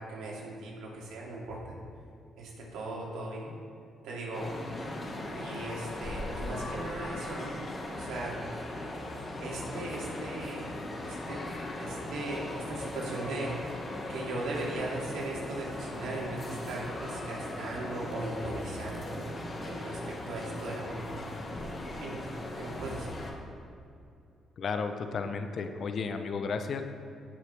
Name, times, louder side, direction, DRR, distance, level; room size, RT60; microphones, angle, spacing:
voice 1, 0.0-1.8 2.4-3.5 4.0-4.5 5.4-7.6 7.9-8.4 9.4-10.7 11.0-11.4 11.8-13.5 14.1-19.3 19.6-21.4 22.0-22.2 22.5-23.1, right 2 dB, 85° right, -3 dB, 2.6 m, -38 dB
sound 1, 4.3-23.3, left 1 dB, 35° left, 1.7 m, -38 dB
voice 2, 24.6-26.8, left 5 dB, 55° left, 7 dB, 0.8 m, -33 dB
17.0 x 6.6 x 3.5 m, 2.5 s
cardioid pair, 90°, 0 cm